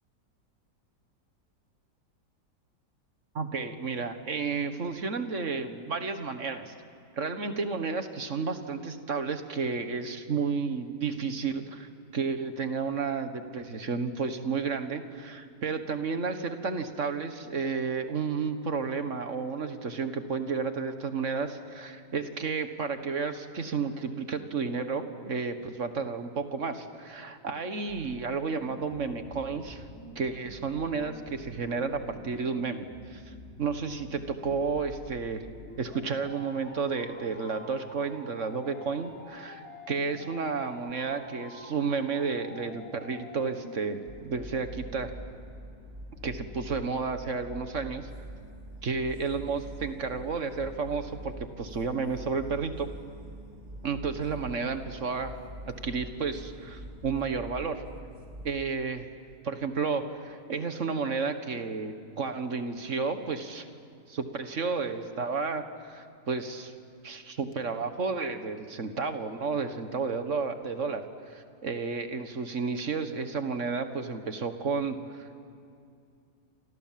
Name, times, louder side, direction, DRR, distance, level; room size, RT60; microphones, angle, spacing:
voice 1, 3.4-6.7 7.2-29.8 30.2-35.4 35.8-45.1 46.2-48.1 48.8-52.9 53.8-55.3 55.7-57.8 58.4-59.1 59.4-63.7 64.1-66.7 67.0-75.4, right 5 dB, 50° right, 8 dB, 1.8 m, -32 dB
sound 1, 27.9-43.9, left 2 dB, 40° left, 4.7 m, -48 dB
sound 2, 44.1-58.6, right 1 dB, 30° right, 1.9 m, -44 dB
29.0 x 26.5 x 7.6 m, 2.5 s
omnidirectional pair, 1.8 m